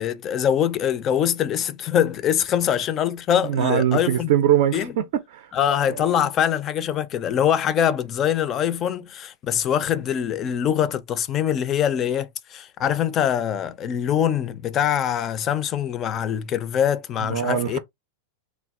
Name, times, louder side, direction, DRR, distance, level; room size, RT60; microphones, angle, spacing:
voice 1, 0.0-4.3 4.7-4.9 5.5-17.8, left 9 dB, 30° left, 0.4 m, -23 dB
voice 2, 3.4-4.9 5.3-5.5 5.9-6.0 17.2-17.8, right 10 dB, 60° right, 0.4 m, -22 dB
3.2 x 2.2 x 2.4 m
figure-of-eight pair, 95°, 0 cm